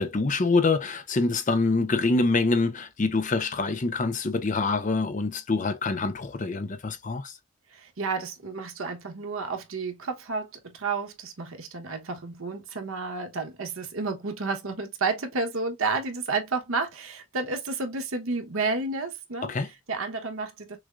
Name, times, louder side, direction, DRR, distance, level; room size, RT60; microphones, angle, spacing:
voice 1, 0.0-7.4 19.4-19.7, left 3 dB, 40° left, 0.6 m, -25 dB
voice 2, 7.7-19.5 19.9-20.8, right 4 dB, 90° right, 1.0 m, -31 dB
6.2 x 2.1 x 2.4 m
head